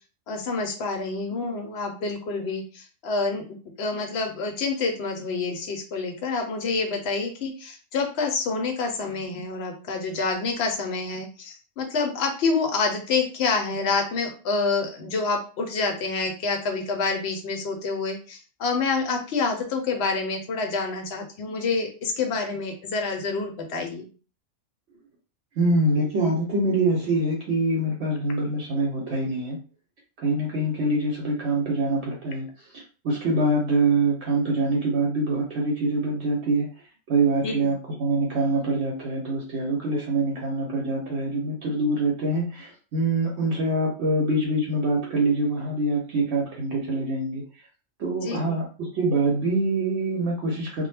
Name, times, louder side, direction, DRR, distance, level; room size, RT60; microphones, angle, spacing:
voice 1, 0.3-3.4 3.8-24.1 37.4-37.7 48.2-48.6, left 4 dB, 65° left, 4 dB, 0.7 m, -27 dB
voice 2, 25.6-29.6 30.2-32.5 33.0-36.7 37.1-47.4 48.0-50.9, right 2 dB, 65° right, -2 dB, 0.9 m, -24 dB
2.2 x 2.0 x 3.2 m, 0.37 s
omnidirectional pair, 1.3 m